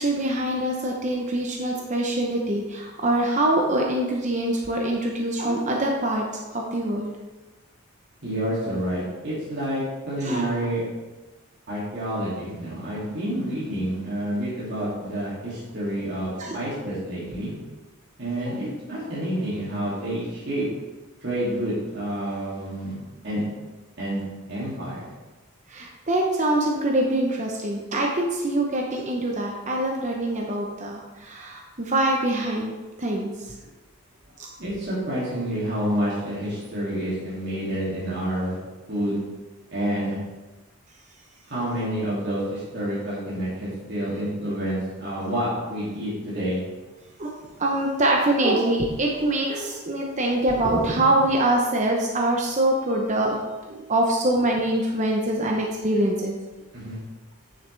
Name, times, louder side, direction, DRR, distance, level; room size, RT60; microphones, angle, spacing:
voice 1, 0.0-6.2 6.5-7.1 10.2-10.7 16.4-16.6 18.5-18.6 25.7-32.7 33.0-33.3 34.4-34.5 47.2-47.3 47.6-53.4 53.7-56.3, right 1 dB, 35° right, 0 dB, 0.8 m, -24 dB
voice 2, 8.2-10.8 11.7-17.5 18.2-20.7 21.2-23.0 23.2-23.4 24.0-25.0 34.6-38.6 38.9-39.2 39.7-40.2 41.5-46.6 56.7-57.0, right 1 dB, 50° right, -9 dB, 2.6 m, -28 dB
9.4 x 6.9 x 3.4 m, 1.2 s
head